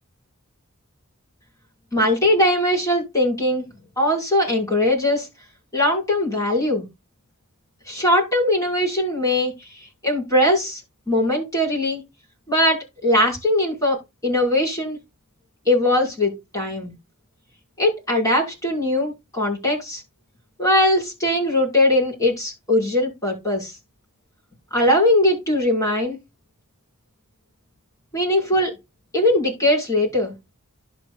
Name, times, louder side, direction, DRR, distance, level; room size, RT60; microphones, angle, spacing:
voice 1, 1.9-3.6 4.0-5.3 5.7-6.8 7.9-10.8 11.1-12.0 12.5-15.0 15.7-16.9 17.8-20.0 20.6-23.7 24.7-26.2 28.1-28.7 29.1-30.3, left 1 dB, 15° left, -2 dB, 5.7 m, -20 dB
11.5 x 8.2 x 2.5 m, 0.21 s
head